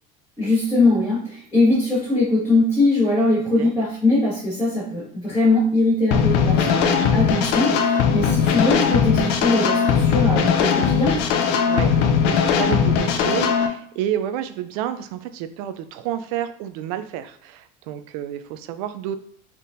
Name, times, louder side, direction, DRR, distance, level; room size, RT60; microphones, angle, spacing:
voice 1, 0.4-11.2, left 2 dB, 15° left, -9 dB, 1.7 m, -21 dB
sound 1, 6.1-13.7, left 7 dB, 60° left, 0.6 m, -19 dB
voice 2, 6.5-7.2 11.6-19.2, right 10 dB, 70° right, 11 dB, 0.4 m, -30 dB
4.2 x 3.6 x 2.6 m, 0.63 s
cardioid pair, 165°, 19 cm